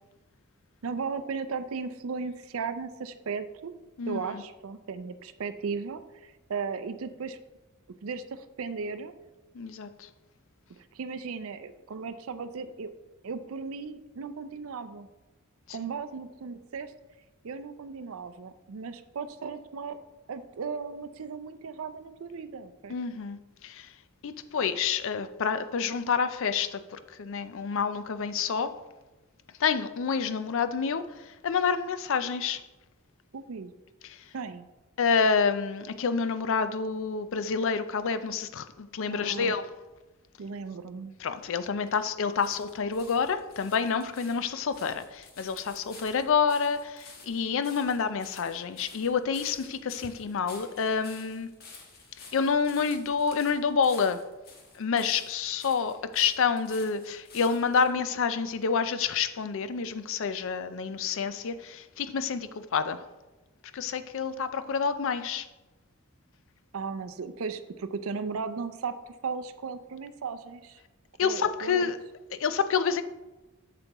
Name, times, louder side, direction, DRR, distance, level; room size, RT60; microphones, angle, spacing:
voice 1, 0.8-3.7 4.1-7.4 8.0-9.1 10.8-12.9 13.2-15.1 15.7-16.9 17.4-20.0 20.3-23.0 33.3-33.7 34.3-34.7 39.1-39.6 40.4-41.1 66.7-69.0 69.2-70.8 71.2-71.9, right 5 dB, 70° right, 0.5 m, -36 dB
voice 2, 4.0-4.4 9.5-10.1 15.7-15.8 22.9-23.9 24.2-28.7 29.6-32.6 34.0-34.2 35.0-39.7 41.2-51.5 52.3-54.2 54.7-63.0 63.7-65.5 71.2-72.0 72.3-73.0, left 6 dB, 60° left, 0.4 m, -28 dB
sound 1, 41.3-57.9 58.6-58.7, left 4 dB, 45° left, 1.3 m, -51 dB
7.9 x 6.8 x 3.0 m
head